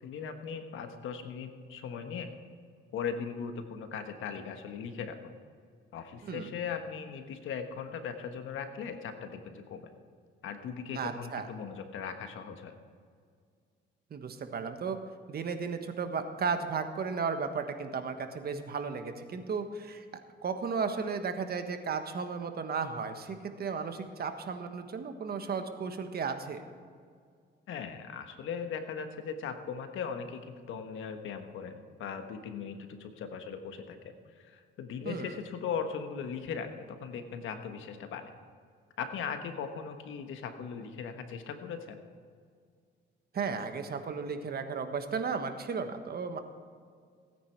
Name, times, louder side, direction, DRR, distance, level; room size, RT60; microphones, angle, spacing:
voice 1, 0.0-2.3 2.9-5.4 5.9-9.9 10.4-12.8 27.7-38.3 39.0-42.0, left 6 dB, 80° left, 7 dB, 1.4 m, -39 dB
voice 2, 10.9-11.5 14.1-15.0 15.3-20.0 20.4-26.6 35.0-35.3 43.3-46.4, right 5 dB, 50° right, 7 dB, 1.4 m, -34 dB
16.5 x 9.5 x 4.7 m, 2.1 s
cardioid pair, 90°, 20 cm